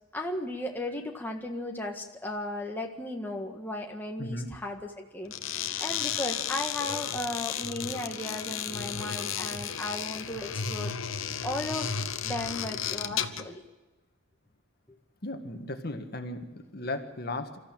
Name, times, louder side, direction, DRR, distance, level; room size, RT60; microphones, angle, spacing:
voice 1, 0.1-13.6, left 1 dB, 10° left, 1 dB, 1.7 m, -36 dB
voice 2, 4.2-4.5 15.2-17.6, left 2 dB, 45° left, 6 dB, 1.8 m, -36 dB
sound 1, 5.3-13.5, left 8 dB, 65° left, 1.1 m, -33 dB
26.0 x 14.5 x 9.0 m, 1.2 s
head